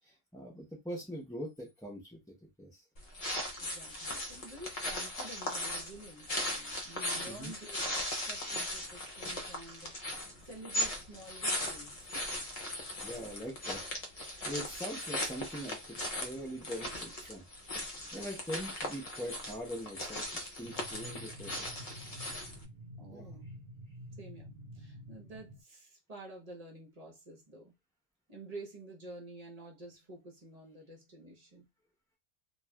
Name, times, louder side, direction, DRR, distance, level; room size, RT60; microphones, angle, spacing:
voice 1, 0.0-2.2 2.6-2.8 7.3-7.5 13.0-13.8 14.2-17.4 18.1-20.2 20.6-21.7 21.9-22.2 23.1-23.3, equal, 5° left, 0.6 m, -42 dB
sound 1, 3.0-22.6, left 1 dB, 40° left, 0.7 m, -38 dB
voice 2, 3.6-12.1 23.0-23.5 24.2-27.7 28.3-31.7, right 2 dB, 40° right, 0.9 m, -50 dB
sound 2, 20.6-25.6, equal, 65° right, 0.9 m, -49 dB
3.0 x 2.3 x 2.2 m
omnidirectional pair, 1.1 m